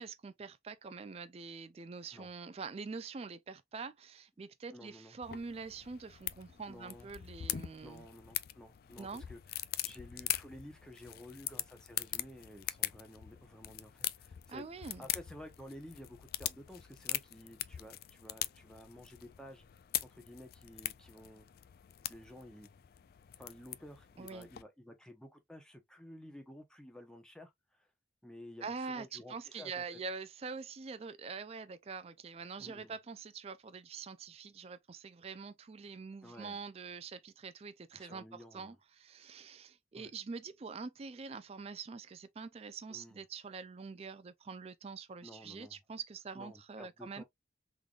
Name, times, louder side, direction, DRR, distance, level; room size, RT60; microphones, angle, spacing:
voice 1, 0.0-8.1 9.0-9.2 14.5-15.0 24.2-24.5 28.6-47.2, right 5 dB, 30° right, 0.3 m, -45 dB
voice 2, 4.7-5.2 6.7-7.1 7.8-19.7 20.0-21.5 22.1-22.7 23.4-27.9 28.2-29.8 32.5-32.9 36.2-36.6 37.9-38.8 39.9-40.1 42.9-43.2 45.2-45.8 46.4-47.2, left 1 dB, 5° left, 0.9 m, -52 dB
sound 1, 5.2-24.6, left 14 dB, 55° left, 0.3 m, -42 dB
3.8 x 3.3 x 2.4 m
head